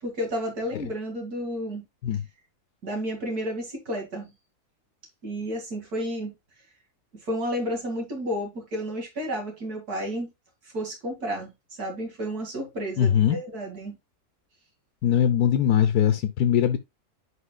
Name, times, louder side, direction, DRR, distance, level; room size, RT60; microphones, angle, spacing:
voice 1, 0.0-1.8 2.8-4.3 5.2-6.3 7.2-10.3 10.6-11.5 11.8-13.9, equal, 75° right, 2.8 m, -31 dB
voice 2, 13.0-13.4 15.0-16.8, left 9 dB, 80° left, 1.3 m, -21 dB
9.9 x 5.3 x 2.3 m
omnidirectional pair, 1.6 m